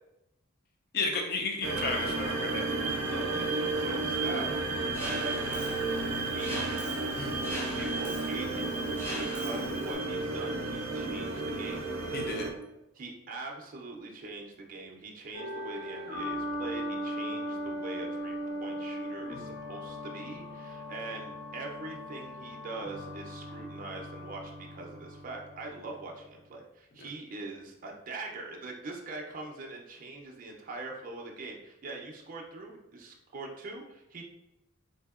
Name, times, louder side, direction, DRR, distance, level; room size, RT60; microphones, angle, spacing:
voice 1, 0.9-2.6 7.2-7.5 12.1-12.5 27.0-27.1, left 3 dB, 50° left, 2 dB, 0.5 m, -33 dB
sound 1, 1.6-12.5, right 3 dB, 85° right, 0.6 m, -32 dB
voice 2, 3.1-4.7 5.0-6.8 7.5-11.8 12.9-18.3 18.6-34.2, right 3 dB, 45° right, 0 dB, 0.5 m, -42 dB
Mechanisms, 4.9-9.9, equal, 10° left, 0.8 m, -41 dB
sound 2, 15.3-26.4, equal, 65° left, 1.2 m, -39 dB
3.8 x 2.7 x 2.4 m, 0.91 s
head